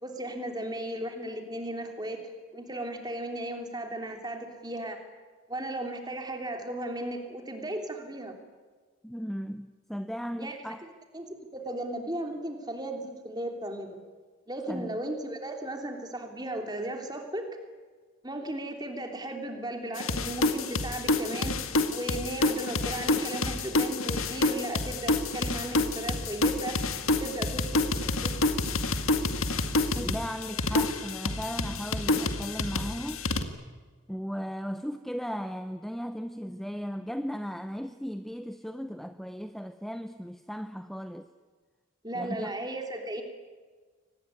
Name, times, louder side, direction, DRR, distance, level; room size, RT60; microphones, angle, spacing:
voice 1, 0.0-5.0 5.5-8.3 10.4-10.6 11.1-11.3 11.5-13.9 14.5-17.5 18.2-26.8 27.2-28.3 42.0-43.2, right 1 dB, 20° right, 4 dB, 3.1 m, -36 dB
voice 2, 9.0-10.8 14.7-15.0 29.9-33.3 34.1-41.3 42.1-42.5, equal, ahead, 9 dB, 0.7 m, -36 dB
sound 1, 20.0-33.4, left 2 dB, 90° left, 1.9 m, -28 dB
24.5 x 19.5 x 9.7 m, 1.5 s
head